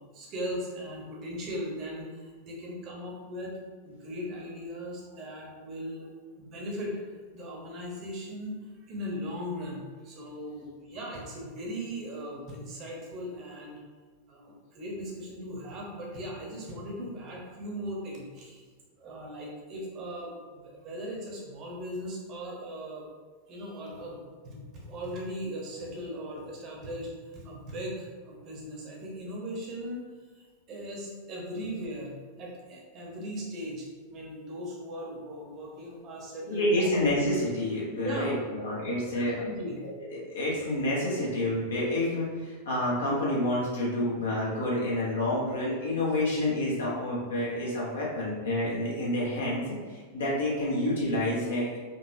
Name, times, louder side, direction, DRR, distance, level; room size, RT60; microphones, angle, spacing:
voice 1, 0.0-3.6 3.8-6.1 6.3-7.0 7.3-13.8 14.3-18.6 19.0-23.1 23.5-30.0 30.3-36.9 38.0-38.3 39.2-39.8, equal, 35° right, -2 dB, 1.0 m, -38 dB
voice 2, 36.5-39.4 40.1-51.8, left 1 dB, 65° left, -6 dB, 1.3 m, -28 dB
4.5 x 2.8 x 2.7 m, 1.5 s
figure-of-eight pair, 90°, 0 cm